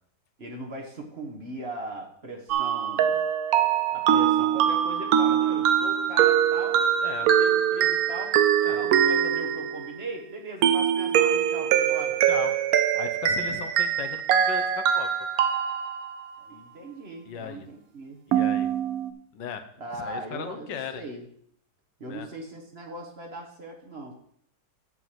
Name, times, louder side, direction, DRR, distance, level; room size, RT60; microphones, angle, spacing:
voice 1, 0.4-3.2 3.9-6.9 7.2-8.4 8.7-12.2 16.4-18.2 19.8-21.3 22.0-24.1, right 2 dB, 35° right, 1 dB, 1.4 m, -39 dB
sound 1, 2.5-10.0 10.6-16.3 18.3-19.1, right 9 dB, 65° right, 0.9 m, -23 dB
voice 2, 12.9-15.1 17.3-17.7 18.3-18.7 19.3-19.6 20.0-21.0 22.1-22.3, left 7 dB, 80° left, 8 dB, 1.5 m, -37 dB
8.1 x 4.7 x 7.4 m, 0.64 s
omnidirectional pair, 1.9 m